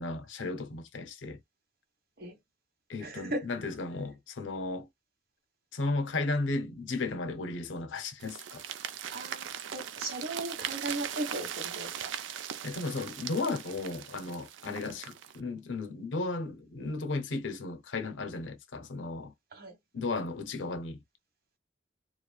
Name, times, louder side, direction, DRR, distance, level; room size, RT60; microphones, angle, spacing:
voice 1, 0.0-1.4 2.9-4.9 5.7-8.6 12.6-19.3 19.9-21.0, left 3 dB, 90° left, 0.6 m, -34 dB
voice 2, 3.0-3.4 9.1-12.1 14.7-14.9 19.5-19.8, right 2 dB, 55° right, 1.3 m, -37 dB
sound 1, 8.2-15.4, right 9 dB, 90° right, 0.4 m, -40 dB
3.1 x 2.3 x 2.2 m
head